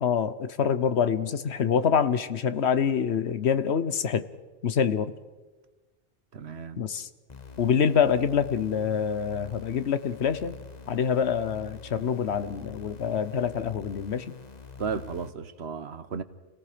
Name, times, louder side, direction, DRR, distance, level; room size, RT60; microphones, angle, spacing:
voice 1, 0.0-4.2 4.6-5.1 6.8-7.1 7.6-10.5 10.9-14.3, left 7 dB, 75° left, 12 dB, 1.2 m, -26 dB
voice 2, 6.3-6.8 14.8-16.2, right 6 dB, 70° right, 12 dB, 1.3 m, -34 dB
sound 1, 7.3-15.3, left 5 dB, 40° left, 1.4 m, -46 dB
29.5 x 18.5 x 5.1 m, 1.2 s
omnidirectional pair, 1.1 m